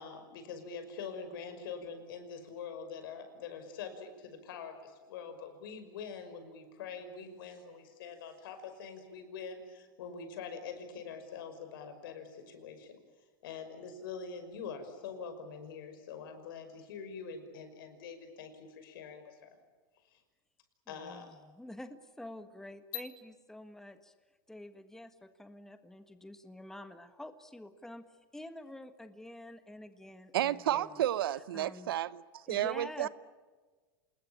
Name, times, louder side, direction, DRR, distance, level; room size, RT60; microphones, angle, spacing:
voice 1, 0.0-13.0 13.4-19.5 20.1-20.2 20.9-21.3, left 6 dB, 75° left, 5.7 m, -44 dB
voice 2, 20.9-24.1 24.5-28.0 28.3-31.0 31.5-31.9 32.5-33.1, left 1 dB, 5° left, 1.5 m, -48 dB
voice 3, 30.3-33.1, right 12 dB, 85° right, 0.9 m, -32 dB
28.0 x 20.5 x 8.8 m
supercardioid pair, 120°, 12 cm